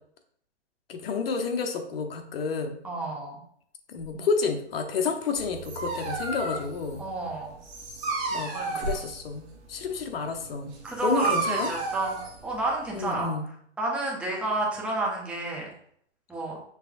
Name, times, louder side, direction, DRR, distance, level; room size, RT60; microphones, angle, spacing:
voice 1, 0.9-2.8 3.9-7.0 8.3-10.8 11.0-11.7 12.9-13.5, left 4 dB, 55° left, 5 dB, 0.9 m, -30 dB
voice 2, 2.8-3.4 7.0-7.6 8.5-8.9 10.8-12.2 12.4-13.3 13.8-15.7 16.3-16.6, right 2 dB, 5° right, -3 dB, 0.6 m, -30 dB
sound 1, 3.9-5.2 6.5-6.6 7.6-9.5, right 2 dB, 50° right, 0.9 m, -40 dB
Dog, 5.4-13.2, right 3 dB, 20° right, 1.3 m, -33 dB
6.0 x 3.3 x 2.6 m, 0.65 s
hypercardioid pair, 145°, 35 cm